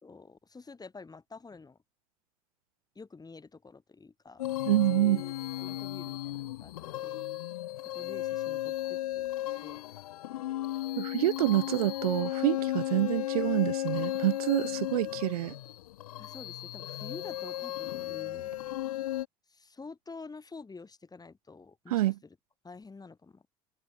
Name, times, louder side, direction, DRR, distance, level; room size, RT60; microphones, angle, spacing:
voice 1, 0.0-1.8 3.0-4.4 4.9-7.3 7.9-9.3 9.6-9.8 16.2-18.5 19.5-22.0 22.6-23.5, left 4 dB, 20° left, 5.2 m, -48 dB
sound 1, 4.4-19.3, left 14 dB, 85° left, 1.4 m, -35 dB
voice 2, 4.7-5.2 11.0-15.6 21.9-22.2, right 15 dB, 85° right, 0.9 m, -27 dB
hypercardioid pair, 75°, 18 cm